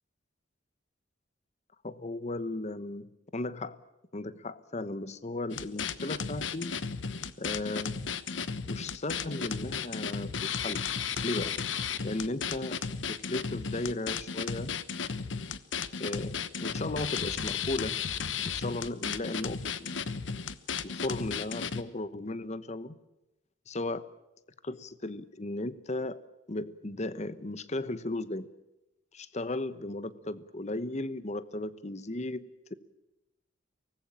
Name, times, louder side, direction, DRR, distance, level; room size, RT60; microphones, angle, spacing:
voice 1, 1.8-3.8 4.1-6.8 7.4-8.0 8.7-10.9 11.2-11.6 12.0-12.8 13.0-14.8 16.0-18.0 18.3-20.0 20.8-23.0 23.7-24.1 24.6-26.2 26.5-28.5 29.1-32.7, left 2 dB, 35° left, 15 dB, 1.0 m, -36 dB
sound 1, 5.5-21.8, left 6 dB, 80° left, 1.1 m, -34 dB
24.0 x 19.0 x 8.9 m, 0.96 s
head